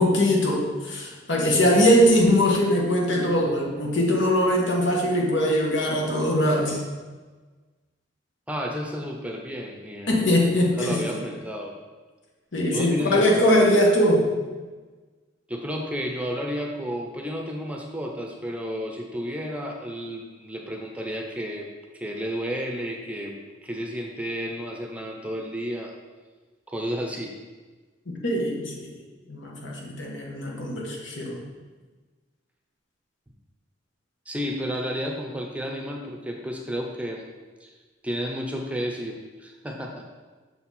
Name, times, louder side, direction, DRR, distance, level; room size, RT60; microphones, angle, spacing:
voice 1, 0.0-6.8 10.1-11.2 12.5-14.2 28.1-29.0 29.3-31.4, equal, 80° left, -1 dB, 1.4 m, -21 dB
voice 2, 8.5-10.2 10.6-11.7 12.7-13.4 15.5-21.7 21.9-25.9 26.7-27.4 34.3-37.3 37.6-37.7 38.0-40.0, equal, 5° right, 1 dB, 0.6 m, -32 dB
6.6 x 4.4 x 4.2 m, 1.3 s
head